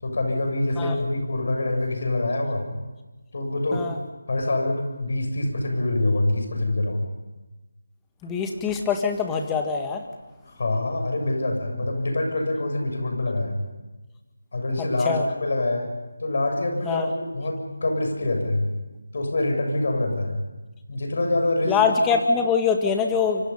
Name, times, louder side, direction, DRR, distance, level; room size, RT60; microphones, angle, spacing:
voice 1, 0.0-2.7 3.3-3.8 4.3-7.1 10.5-13.6 14.5-15.9 16.2-18.7 19.1-20.4 20.9-21.8, left 2 dB, 55° left, 4 dB, 7.1 m, -25 dB
voice 2, 8.2-10.0 15.1-15.3 16.9-17.1 21.7-23.5, left 5 dB, 10° left, 4 dB, 1.7 m, -23 dB
27.0 x 25.0 x 5.5 m, 1.1 s
figure-of-eight pair, 165°, 0 cm